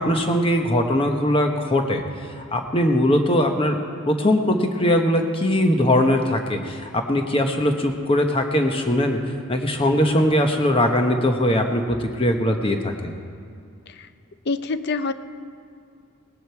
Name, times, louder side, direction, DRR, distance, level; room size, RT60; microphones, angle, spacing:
voice 1, 0.0-2.0 2.4-9.2 9.5-13.2, left 1 dB, 25° left, 4 dB, 1.0 m, -21 dB
voice 2, 14.5-15.1, left 3 dB, 50° left, 12 dB, 0.5 m, -25 dB
19.0 x 10.0 x 4.6 m, 2.4 s
head